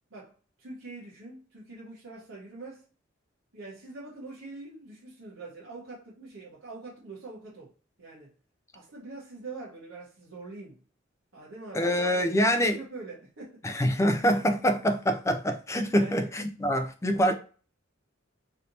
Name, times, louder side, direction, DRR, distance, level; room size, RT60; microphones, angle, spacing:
voice 1, 0.1-2.9 3.5-7.7 8.0-8.3 8.7-10.8 11.3-13.8 15.9-16.3 17.2-17.3, right 3 dB, 75° right, 1.1 m, -44 dB
voice 2, 11.7-12.8 13.6-17.3, equal, 15° left, 0.4 m, -25 dB
3.2 x 2.8 x 2.7 m
head